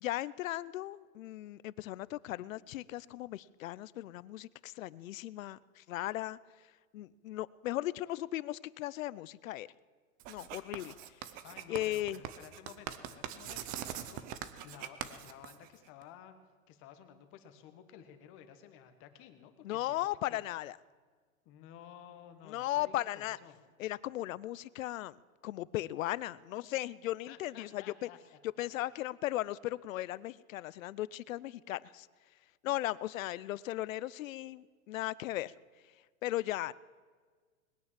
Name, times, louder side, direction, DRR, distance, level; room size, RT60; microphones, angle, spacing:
voice 1, 0.0-6.4 6.9-9.7 10.3-10.9 11.7-12.2 19.6-20.8 22.5-23.4 23.8-28.1 28.6-32.1 32.6-35.5 36.2-36.7, left 15 dB, 65° left, 21 dB, 0.6 m, -37 dB
Writing, 10.2-16.0, right 11 dB, 20° right, 0.5 m, -43 dB
voice 2, 11.4-16.3 16.7-20.4 21.4-23.6 27.3-28.7, left 9 dB, 30° left, 8 dB, 1.5 m, -54 dB
20.5 x 9.4 x 7.5 m, 1.5 s
hypercardioid pair, 150°, 42 cm